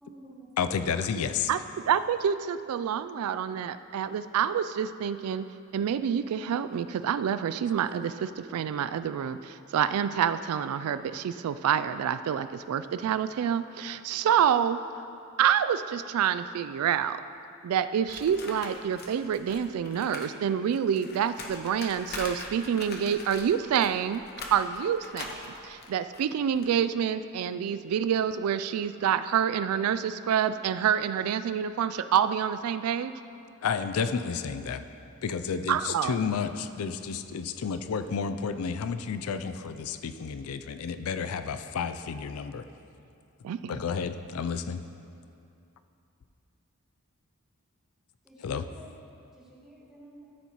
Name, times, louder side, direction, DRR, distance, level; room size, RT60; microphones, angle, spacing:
voice 1, 0.0-0.5 48.2-49.0 49.3-50.3, right 1 dB, 5° right, -6 dB, 1.5 m, -51 dB
voice 2, 0.6-1.5 33.6-34.8 35.2-42.7 43.7-44.8 48.4-48.7, left 6 dB, 80° left, 10 dB, 0.4 m, -31 dB
voice 3, 1.9-5.5 5.7-14.8 15.4-17.2 17.6-24.2 24.5-33.1 35.7-36.2 43.4-43.8, right 8 dB, 90° right, 13 dB, 0.3 m, -27 dB
sound 1, 18.1-20.3 20.6-26.7, left 3 dB, 50° left, 0.8 m, -42 dB
13.0 x 7.0 x 3.0 m, 2.6 s
head